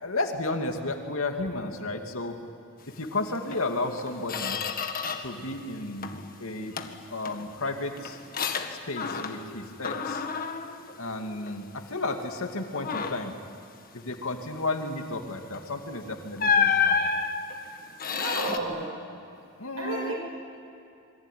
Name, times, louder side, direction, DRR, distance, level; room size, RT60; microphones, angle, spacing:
voice 1, 0.0-2.4 3.0-4.6 5.2-6.1 6.4-6.8 7.1-8.2 8.7-10.2 11.0-13.3 13.9-17.1 19.6-20.1, left 2 dB, 75° left, 4 dB, 2.5 m, -32 dB
Squeak, 3.5-3.6 4.0-5.4 5.7-6.3 6.8-9.6 9.8-11.7 12.1-12.3 12.7-13.4 15.5-15.7 16.4-18.6, left 6 dB, 45° left, 1.7 m, -30 dB
voice 2, 18.0-18.9 19.8-20.1, right 2 dB, 85° right, 0 dB, 6.4 m, -32 dB
27.0 x 23.0 x 9.3 m, 2.6 s
head